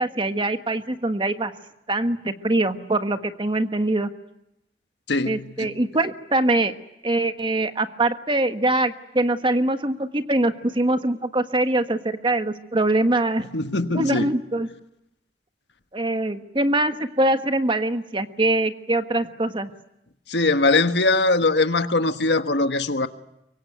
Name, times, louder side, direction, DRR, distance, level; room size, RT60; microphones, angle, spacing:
voice 1, 0.0-1.5 1.9-4.1 5.2-6.7 7.0-13.5 13.9-14.7 15.9-19.7, right 2 dB, 30° right, 1.4 m, -23 dB
voice 2, 5.1-5.7 13.5-14.3 20.3-23.1, left 2 dB, 80° left, 1.5 m, -21 dB
24.5 x 24.0 x 9.3 m
head